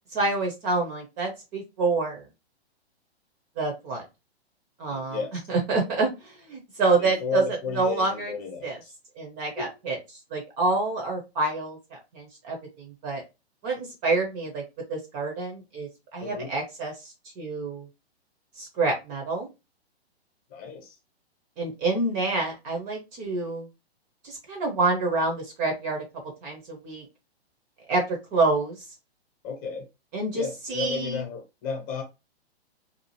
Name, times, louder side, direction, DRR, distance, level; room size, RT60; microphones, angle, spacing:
voice 1, 0.1-2.3 3.6-4.0 4.8-5.2 5.5-8.4 8.6-8.8 9.2-10.0 10.3-13.2 13.6-14.6 14.9-17.9 18.6-19.5 21.6-23.7 24.2-26.0 26.4-27.1 27.9-28.8 30.1-31.2, right 3 dB, 25° right, 0.6 m, -27 dB
voice 2, 4.9-5.4 7.0-8.9 9.6-9.7 16.2-16.5 20.5-21.0 29.4-29.8 30.3-32.0, left 5 dB, 25° left, 0.9 m, -33 dB
2.7 x 2.4 x 2.8 m
figure-of-eight pair, 120°, 32 cm